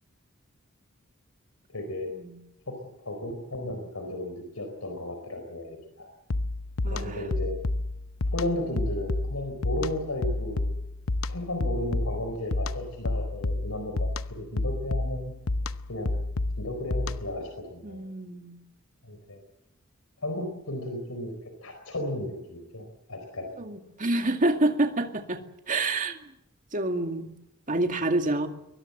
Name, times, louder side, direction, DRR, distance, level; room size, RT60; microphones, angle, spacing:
voice 1, 1.7-2.1 2.7-6.1 6.9-7.5 8.3-10.6 11.3-14.1 14.5-15.3 15.9-16.1 16.6-18.0 19.0-19.4 20.2-23.5, left 1 dB, 85° left, 5 dB, 4.4 m, -34 dB
sound 1, 6.3-17.4, left 2 dB, 70° left, 0.8 m, -30 dB
voice 2, 6.8-7.2 17.8-18.6 23.6-26.2 26.7-27.3 27.7-28.5, right 2 dB, 40° right, 5 dB, 2.3 m, -28 dB
22.5 x 21.0 x 8.0 m, 0.87 s
head